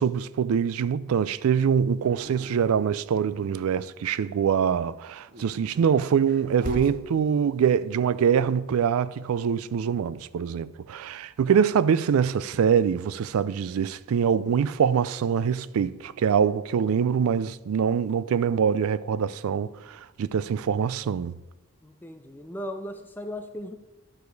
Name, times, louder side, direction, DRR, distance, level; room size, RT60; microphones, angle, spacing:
voice 1, 0.0-21.3, right 7 dB, 90° right, 0.3 m, -24 dB
Dog, 2.0-3.6 5.2-7.0, right 2 dB, 40° right, 0.6 m, -37 dB
voice 2, 21.8-23.8, left 1 dB, 10° left, 0.4 m, -37 dB
11.5 x 5.0 x 4.6 m
head